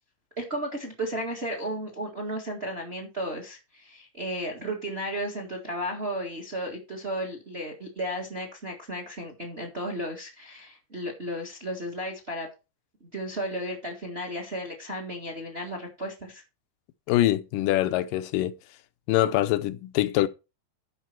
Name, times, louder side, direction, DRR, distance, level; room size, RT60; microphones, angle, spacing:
voice 1, 0.4-12.5 13.0-16.4, equal, 30° right, 1.3 m, -34 dB
voice 2, 17.1-18.6 19.1-20.3, left 14 dB, 80° left, 2.3 m, -24 dB
12.0 x 5.0 x 4.6 m
omnidirectional pair, 3.9 m